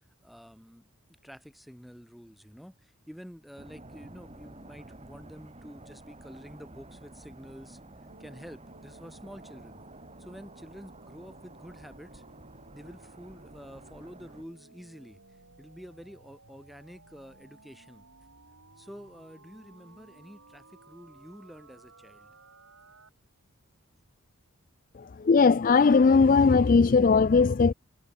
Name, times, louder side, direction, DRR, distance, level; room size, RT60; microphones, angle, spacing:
voice 1, 0.2-7.8 8.2-9.8 10.2-12.2 12.7-18.0 18.8-22.3, equal, ahead, 4.0 m, -48 dB
sound 1, 3.6-14.4, right 2 dB, 30° right, 1.7 m, -50 dB
sound 2, 8.1-23.1, right 2 dB, 65° right, 3.6 m, -56 dB
voice 2, 25.2-27.7, left 4 dB, 40° left, 0.3 m, -19 dB
head